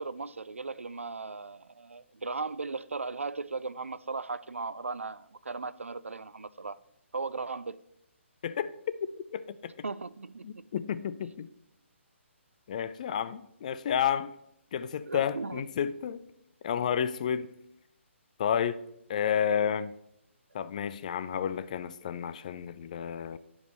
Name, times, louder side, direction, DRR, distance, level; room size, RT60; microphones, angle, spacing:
voice 1, 0.0-6.8 7.1-7.8 9.8-10.7 15.1-15.6, right 4 dB, 75° right, 0.3 m, -37 dB
voice 2, 9.3-9.7 10.4-11.5 12.7-14.3 14.7-16.2 16.6-17.5 18.4-18.8 19.1-19.9 20.5-23.4, left 8 dB, 35° left, 0.3 m, -31 dB
10.5 x 4.7 x 4.1 m
figure-of-eight pair, 135°, 7 cm